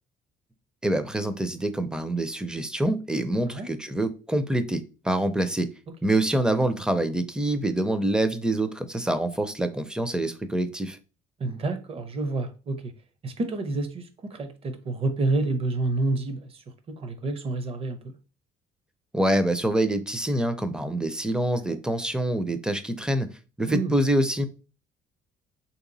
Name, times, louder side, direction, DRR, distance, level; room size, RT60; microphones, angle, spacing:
voice 1, 0.8-5.7 6.0-11.0 19.1-23.3 23.6-24.5, right 1 dB, 5° right, 0.4 m, -26 dB
voice 2, 11.4-12.9 13.2-16.5 16.9-18.0 21.7-21.8 23.7-23.9, right 2 dB, 35° right, 0.7 m, -29 dB
3.3 x 2.9 x 3.9 m
cardioid pair, 110°, 17 cm